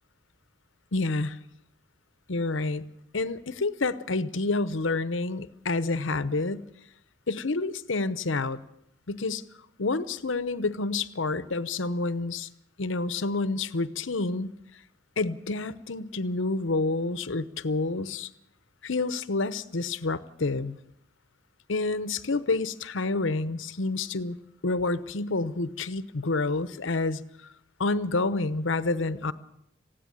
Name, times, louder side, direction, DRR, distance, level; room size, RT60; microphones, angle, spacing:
voice 1, 0.9-1.4 2.3-2.8 3.1-6.7 7.3-8.6 9.1-9.4 9.8-12.5 12.8-14.5 15.2-18.3 18.8-20.8 21.7-24.4 24.6-27.2 27.8-29.3, left 3 dB, 75° left, 15 dB, 0.9 m, -28 dB
19.0 x 15.5 x 8.8 m, 0.77 s
head